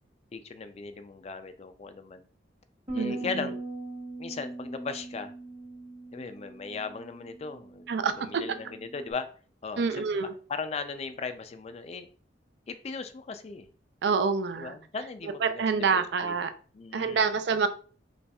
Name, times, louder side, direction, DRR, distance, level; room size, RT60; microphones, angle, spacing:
voice 1, 0.3-2.2 2.9-3.6 4.2-5.3 6.1-7.9 8.2-9.3 9.6-10.0 10.5-12.1 12.7-13.7 14.6-16.3 16.7-17.3, left 4 dB, 35° left, 10 dB, 0.3 m, -38 dB
Bass guitar, 2.9-9.1, right 2 dB, 25° right, 1.0 m, -41 dB
voice 2, 2.9-3.5 7.9-8.6 9.8-10.3 14.0-14.8 15.2-16.5 16.9-17.7, right 5 dB, 65° right, 10 dB, 0.4 m, -27 dB
4.2 x 3.1 x 2.3 m, 0.40 s
head